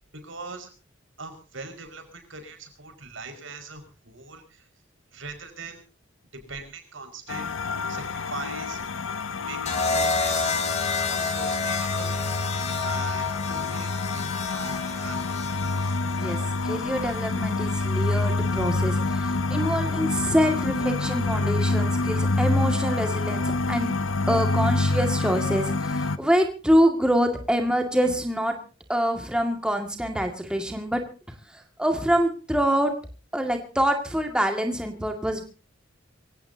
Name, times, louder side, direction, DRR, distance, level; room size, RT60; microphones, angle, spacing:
voice 1, 0.1-0.7 1.2-4.7 5.1-5.8 6.5-7.5 7.9-8.8 9.3-10.5 10.9-12.1 12.8-15.2, right 4 dB, 80° right, 6 dB, 5.2 m, -41 dB
sound 1, 7.3-26.2, left 3 dB, 85° left, 0.9 m, -27 dB
sound 2, 9.7-17.8 19.0-19.4, left 4 dB, 35° left, 3.1 m, -30 dB
voice 2, 16.6-23.9 24.3-28.6 28.9-31.0 31.5-32.9 33.3-35.4, equal, 5° right, 3 dB, 2.0 m, -25 dB
24.5 x 16.5 x 2.8 m, 0.35 s
head